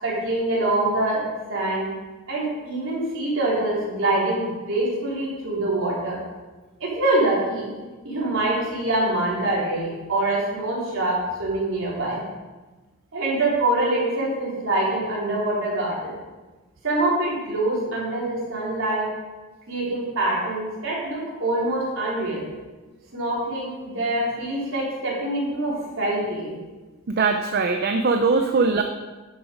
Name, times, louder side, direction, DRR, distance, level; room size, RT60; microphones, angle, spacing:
voice 1, 0.0-1.2 1.5-1.9 2.3-6.2 6.8-7.7 8.0-12.2 13.1-16.1 16.8-19.1 19.7-22.5 23.1-26.5, right 2 dB, 65° right, -5 dB, 3.8 m, -25 dB
voice 2, 27.1-28.8, right 4 dB, 50° right, 5 dB, 0.6 m, -21 dB
11.0 x 7.1 x 5.2 m, 1.2 s
head